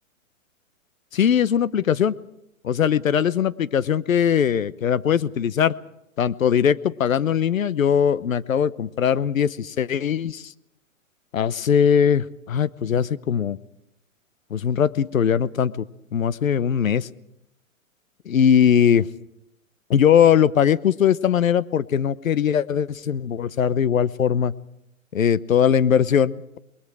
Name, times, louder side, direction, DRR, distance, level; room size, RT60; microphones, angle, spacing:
voice 1, 1.1-2.2 2.6-5.7 6.2-10.5 11.3-13.6 14.5-15.8 16.1-17.1 18.3-19.1 19.9-24.5 25.1-26.6, left 8 dB, 70° left, 16 dB, 1.0 m, -20 dB
28.5 x 21.0 x 4.9 m, 0.83 s
hypercardioid pair, 130°, 41 cm